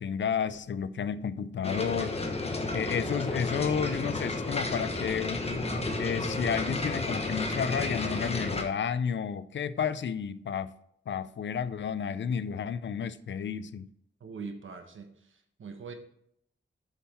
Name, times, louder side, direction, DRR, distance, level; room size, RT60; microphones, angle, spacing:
voice 1, 0.0-2.2 2.7-5.6 6.0-10.7 11.1-13.9, left 7 dB, 70° left, 0.5 m, -31 dB
sound 1, 1.6-8.6, left 2 dB, 30° left, 1.1 m, -32 dB
voice 2, 14.2-15.9, right 5 dB, 85° right, 1.2 m, -42 dB
8.4 x 5.6 x 4.3 m
wide cardioid pair, 135°, 20 cm